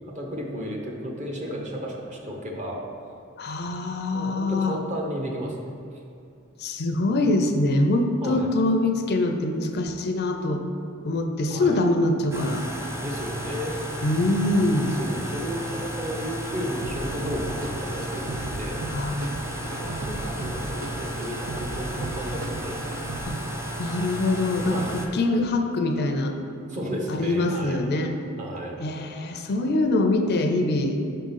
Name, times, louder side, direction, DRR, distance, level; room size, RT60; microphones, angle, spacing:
voice 1, 0.1-2.8 4.1-5.5 8.2-8.5 11.5-11.8 13.0-13.8 15.0-18.8 19.5-22.8 24.7-24.9 26.7-27.8 28.4-28.8, equal, 35° right, 0 dB, 0.9 m, -33 dB
voice 2, 3.4-4.8 6.6-10.6 11.0-12.7 14.0-15.0 18.9-19.1 19.6-19.9 23.3-23.4 23.8-26.4 27.1-28.1 28.8-31.0, left 2 dB, 50° left, 4 dB, 0.5 m, -24 dB
sound 1, 12.3-25.1, right 1 dB, 15° right, 0.5 m, -34 dB
sound 2, 16.8-23.2, right 1 dB, 80° right, 0.6 m, -36 dB
5.6 x 3.7 x 5.6 m, 2.6 s
head